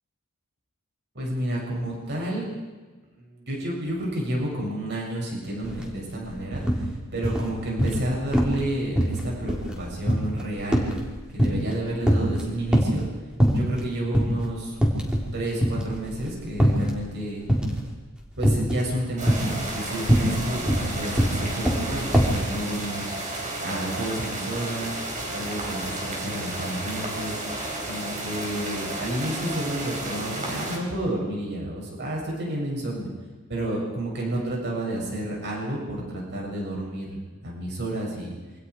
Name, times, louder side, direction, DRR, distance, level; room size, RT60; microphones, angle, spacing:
voice 1, 1.1-2.5 3.2-10.8 11.3-13.1 13.5-14.7 15.3-17.4 18.4-23.3 23.6-25.0 25.3-27.4 27.8-33.1 33.5-37.2 37.4-38.4, right 1 dB, 50° right, -2 dB, 7.6 m, -30 dB
sound 1, 5.6-5.8 6.1-6.8 7.2-8.1 8.3-8.7 9.0-11.8 12.0-13.0 13.4-13.8 14.1-14.3 14.7-15.3 15.6-17.0 17.5-17.9 18.4-18.9 19.2-22.4, equal, 5° right, 3.9 m, -22 dB
sound 2, 19.2-30.8, right 2 dB, 35° right, 5.5 m, -32 dB
27.5 x 25.5 x 4.9 m, 1.3 s
head